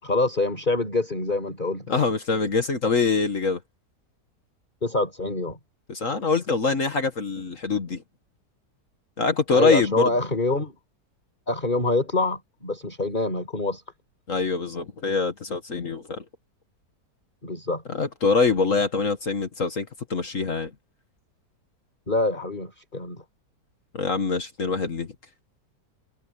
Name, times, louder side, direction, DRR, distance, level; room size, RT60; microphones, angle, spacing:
voice 1, 0.0-2.0 4.8-5.6 9.5-10.8 11.5-13.8 17.4-17.8 22.1-23.2, left 2 dB, 25° left, 5.9 m, -25 dB
voice 2, 1.9-3.6 5.9-8.0 9.2-10.1 14.3-16.2 17.9-20.7 23.9-25.1, left 4 dB, 50° left, 1.9 m, -24 dB
omnidirectional pair, 1.8 m